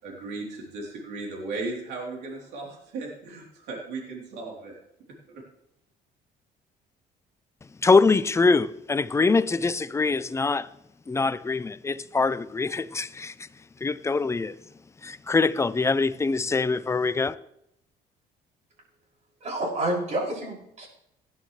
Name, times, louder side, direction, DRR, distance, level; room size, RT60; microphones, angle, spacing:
voice 1, 0.0-4.8 5.3-5.4, right 3 dB, 85° right, 3.4 m, -36 dB
voice 2, 7.8-10.7 11.1-13.3 13.8-14.5 15.0-17.4, left 4 dB, 15° left, 0.5 m, -23 dB
voice 3, 19.4-20.9, right 1 dB, 45° right, 6.1 m, -29 dB
17.0 x 11.0 x 3.3 m
cardioid pair, 110°, 17 cm